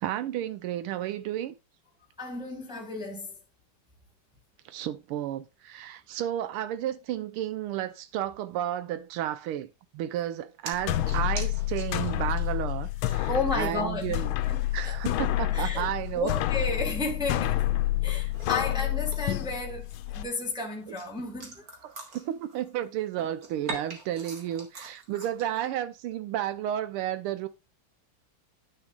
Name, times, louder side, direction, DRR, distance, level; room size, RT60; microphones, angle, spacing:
voice 1, 0.0-1.5 4.7-9.7 9.9-14.3 14.7-16.3 21.8-27.5, right 12 dB, 85° right, 1.6 m, -32 dB
voice 2, 2.2-3.3 13.3-14.2 14.5-15.0 15.5-17.6 18.0-21.6, left 3 dB, 5° right, 0.9 m, -33 dB
sound 1, 10.7-20.2, left 15 dB, 80° left, 1.4 m, -29 dB
sound 2, 10.7-12.8 13.0-13.1 13.6-13.7 14.3-17.0 17.3-19.5 19.9-22.9 23.1-25.7, right 3 dB, 45° right, 2.1 m, -45 dB
10.0 x 6.6 x 2.4 m
omnidirectional pair, 2.4 m